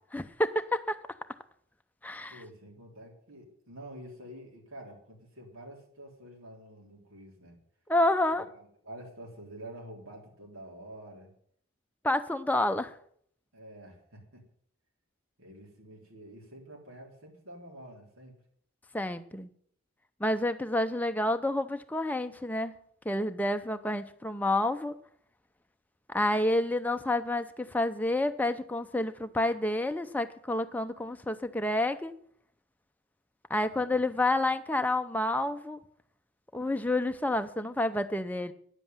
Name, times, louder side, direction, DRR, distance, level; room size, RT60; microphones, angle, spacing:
voice 1, 0.1-1.0 2.0-2.4 7.9-8.4 12.0-12.9 18.9-19.5 20.2-22.8 23.1-25.0 26.1-32.1 33.5-35.8 36.5-38.5, left 1 dB, 10° left, 8 dB, 0.6 m, -29 dB
voice 2, 2.3-7.6 8.4-11.3 13.5-14.5 15.4-18.4 33.6-34.2, right 1 dB, 80° right, 0 dB, 3.7 m, -48 dB
9.8 x 7.7 x 9.1 m, 0.64 s
head